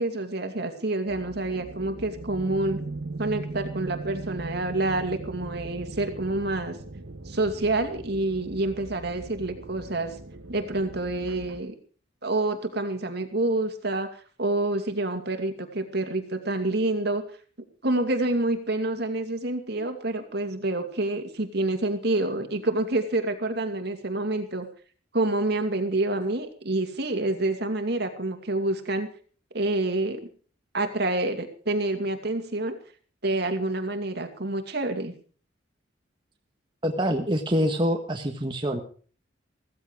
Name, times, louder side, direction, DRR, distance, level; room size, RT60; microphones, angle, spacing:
voice 1, 0.0-2.8 3.2-6.8 7.3-10.1 10.5-11.7 12.2-14.1 14.4-17.2 17.8-24.7 25.1-29.1 29.5-30.3 30.7-32.8 33.2-35.1, right 2 dB, 55° right, 6 dB, 2.6 m, -27 dB
sound 1, 1.1-11.6, right 2 dB, 80° right, 1.4 m, -39 dB
voice 2, 36.8-38.8, equal, 25° right, 4 dB, 1.4 m, -25 dB
16.0 x 15.0 x 4.9 m, 0.41 s
head